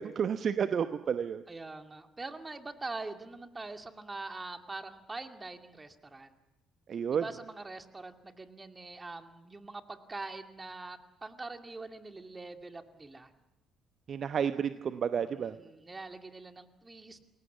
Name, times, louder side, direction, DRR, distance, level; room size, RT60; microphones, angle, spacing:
voice 1, 0.0-1.4 6.9-7.2 14.1-15.5, right 7 dB, 45° right, 11 dB, 0.9 m, -31 dB
voice 2, 1.5-6.4 7.1-13.3 15.3-17.3, right 3 dB, 20° right, 6 dB, 2.4 m, -43 dB
29.0 x 22.0 x 7.1 m, 0.96 s
figure-of-eight pair, 45°, 0 cm